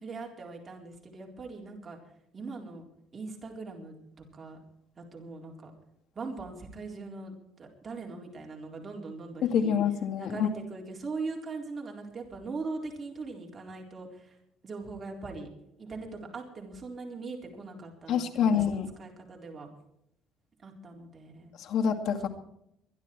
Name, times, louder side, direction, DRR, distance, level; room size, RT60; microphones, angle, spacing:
voice 1, 0.0-2.0 2.3-2.9 3.1-3.9 4.3-4.6 5.0-5.7 6.1-7.3 7.6-9.7 10.2-14.4 14.6-15.5 15.8-19.7 20.6-21.5, right 3 dB, 25° right, 0 dB, 4.0 m, -40 dB
voice 2, 9.4-10.5 18.1-18.9 21.6-22.3, left 7 dB, 60° left, 3 dB, 2.3 m, -26 dB
23.0 x 11.5 x 4.6 m, 0.78 s
cardioid pair, 160°, 0 cm